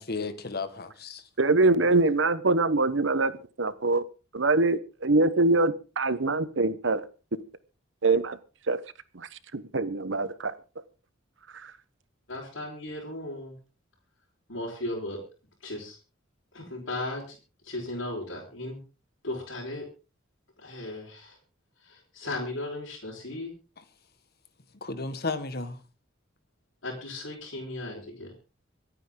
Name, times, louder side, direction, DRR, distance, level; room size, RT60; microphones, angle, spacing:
voice 1, 0.0-1.2 23.8-23.9 24.8-25.8, left 3 dB, 55° left, 1.6 m, -33 dB
voice 2, 1.4-3.3 3.6-4.0 4.3-7.0 8.0-8.4 8.7-8.8 9.1-9.3 9.5-10.5, right 3 dB, 70° right, 1.0 m, -24 dB
voice 3, 12.3-13.5 14.5-15.2 15.6-16.0 16.5-17.3 17.6-18.8 19.2-19.9 20.6-21.4 21.8-23.5 26.8-28.3, left 2 dB, 80° left, 4.8 m, -36 dB
25.0 x 9.2 x 3.8 m
head